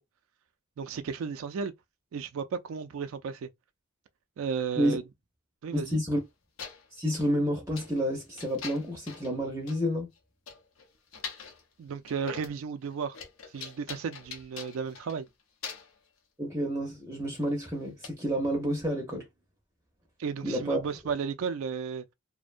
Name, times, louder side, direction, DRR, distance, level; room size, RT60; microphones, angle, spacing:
voice 1, 0.8-1.7 2.1-3.5 4.4-5.0 5.6-6.0 11.8-13.2 13.5-15.3 20.2-22.0, right 6 dB, 80° right, 0.3 m, -34 dB
voice 2, 5.7-6.2 6.9-10.1 16.4-19.3 20.4-20.8, equal, 15° right, 0.5 m, -29 dB
sound 1, 6.2-6.3 6.6-7.3 7.8-8.0 8.4-9.4 9.7-9.8 10.2-10.3 10.5-11.6 12.1-12.6 12.9-15.3 15.6-16.0 17.3-17.5 18.0-18.1, left 6 dB, 80° left, 0.6 m, -43 dB
2.5 x 2.1 x 2.4 m
head